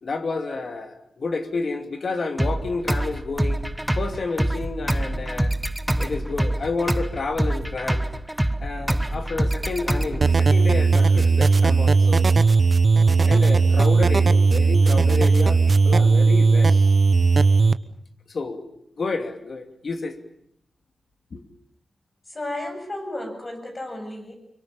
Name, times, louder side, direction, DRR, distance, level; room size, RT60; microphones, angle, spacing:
voice 1, 0.0-3.6 4.0-5.5 6.0-8.1 8.6-12.3 13.2-16.9 18.3-20.2 21.3-21.5, left 3 dB, 60° left, 7 dB, 2.8 m, -30 dB
sound 1, 2.4-10.4, right 1 dB, 5° right, 1.1 m, -25 dB
sound 2, 10.2-17.7, right 4 dB, 45° right, 0.9 m, -17 dB
voice 2, 22.3-24.3, left 1 dB, 30° left, 5 dB, 7.2 m, -33 dB
25.5 x 23.5 x 7.2 m, 0.72 s
wide cardioid pair, 110°, 0 cm